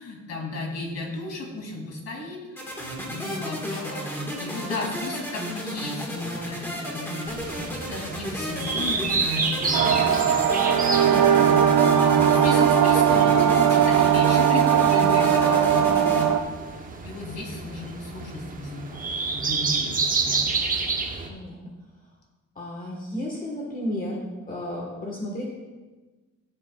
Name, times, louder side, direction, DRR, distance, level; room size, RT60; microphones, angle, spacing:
voice 1, 0.0-16.5 17.0-20.4, left 2 dB, 55° left, -1 dB, 2.6 m, -34 dB
sound 1, 2.6-16.3, equal, 5° left, 1.5 m, -33 dB
sound 2, 7.3-21.3, right 4 dB, 25° right, 0.9 m, -30 dB
sound 3, 9.7-16.4, right 8 dB, 75° right, 0.8 m, -19 dB
voice 2, 15.6-16.2 21.3-21.6 22.5-24.1 24.5-25.5, left 1 dB, 30° left, -2 dB, 1.3 m, -33 dB
15.5 x 7.8 x 2.3 m, 1.3 s
cardioid pair, 160°, 30 cm